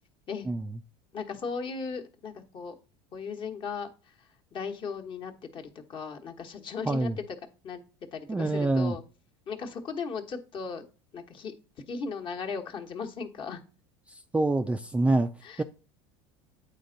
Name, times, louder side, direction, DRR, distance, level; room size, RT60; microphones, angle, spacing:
voice 1, 1.1-2.7 3.1-4.1 4.5-7.1 7.6-7.8 8.1-9.0 9.5-10.8 11.1-11.5 11.9-13.6 15.4-15.6, left 5 dB, 40° left, 1.2 m, -37 dB
voice 2, 6.9-7.2 8.3-9.0 14.1-15.3 15.6-15.7, right 2 dB, 10° right, 0.3 m, -26 dB
8.5 x 4.4 x 3.9 m
supercardioid pair, 115°, 13 cm